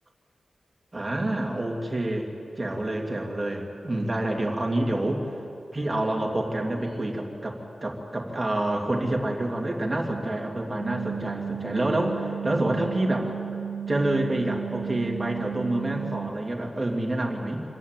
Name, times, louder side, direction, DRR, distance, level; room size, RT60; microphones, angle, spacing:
voice 1, 0.9-2.3 2.6-5.3 5.7-13.3 13.9-17.6, right 1 dB, 20° right, 0 dB, 2.5 m, -27 dB
sound 1, 4.8-5.1 6.7-7.1 8.6-8.8 10.6-10.8 12.7-13.1 15.2-15.4, left 1 dB, 35° left, 4.1 m, -47 dB
sound 2, 10.8-16.3, right 8 dB, 85° right, 0.4 m, -34 dB
26.5 x 10.5 x 9.1 m, 2.5 s
wide cardioid pair, 150°, 0 cm